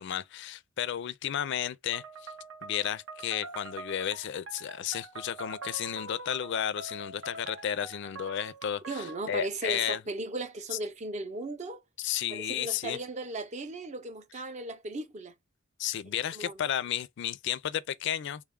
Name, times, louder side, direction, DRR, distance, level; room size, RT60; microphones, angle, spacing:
voice 1, 0.0-2.3 2.6-10.0 12.0-13.0 15.8-18.4, left 10 dB, 60° left, 0.4 m, -33 dB
sound 1, 1.9-9.3, right 3 dB, 80° right, 0.7 m, -44 dB
voice 2, 8.9-11.8 12.3-15.3 16.3-16.6, right 2 dB, 35° right, 0.5 m, -37 dB
3.5 x 2.3 x 3.6 m
head